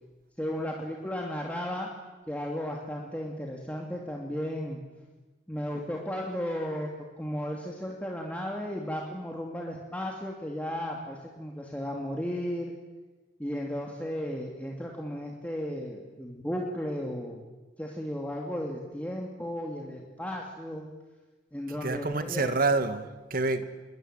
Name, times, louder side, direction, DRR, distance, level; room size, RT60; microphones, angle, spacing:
voice 1, 0.4-1.9 2.3-4.8 5.5-12.7 13.4-17.4 17.8-20.9 21.5-22.5, equal, 10° left, 0 dB, 2.6 m, -34 dB
voice 2, 21.8-23.6, right 3 dB, 50° right, 10 dB, 1.8 m, -27 dB
28.0 x 22.0 x 9.0 m, 1.2 s
head